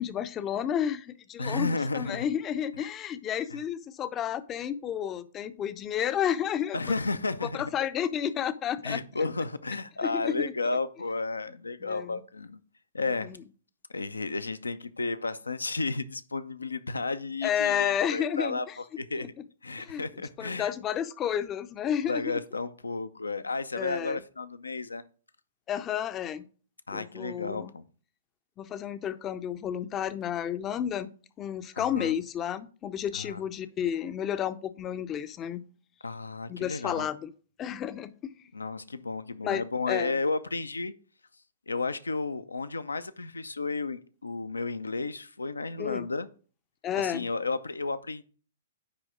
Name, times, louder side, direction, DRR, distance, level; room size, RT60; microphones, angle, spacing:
voice 1, 0.0-7.0 7.4-9.0 10.0-10.5 11.8-12.2 13.2-13.4 17.4-18.8 19.8-20.0 20.4-22.2 23.8-24.2 25.7-26.5 26.9-27.7 28.6-31.1 31.4-35.6 36.5-37.3 37.6-38.1 39.4-40.1 45.8-46.1 46.8-47.3, left 9 dB, 25° left, 0.5 m, -31 dB
voice 2, 1.4-2.3 3.5-3.6 6.7-7.6 8.8-12.6 12.9-13.3 13.9-19.3 19.6-20.7 22.1-25.0 26.9-27.8 31.8-32.2 33.1-33.4 36.0-37.1 38.5-40.9 41.7-46.3 46.9-48.2, left 3 dB, 80° left, 0.6 m, -32 dB
9.8 x 3.4 x 5.0 m
figure-of-eight pair, 115°, 0 cm